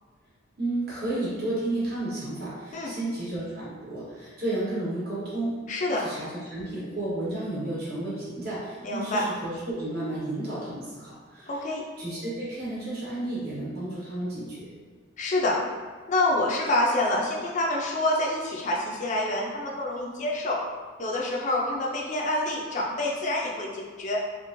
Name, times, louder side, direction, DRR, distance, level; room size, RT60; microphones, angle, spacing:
voice 1, 0.6-5.6 5.9-11.6 12.0-14.7, right 1 dB, 55° right, -8 dB, 1.0 m, -32 dB
voice 2, 5.7-6.1 8.8-9.2 11.5-11.8 15.2-15.6 16.1-20.6 21.0-24.2, left 1 dB, 40° left, -2 dB, 0.4 m, -27 dB
3.0 x 2.4 x 2.5 m, 1.4 s
head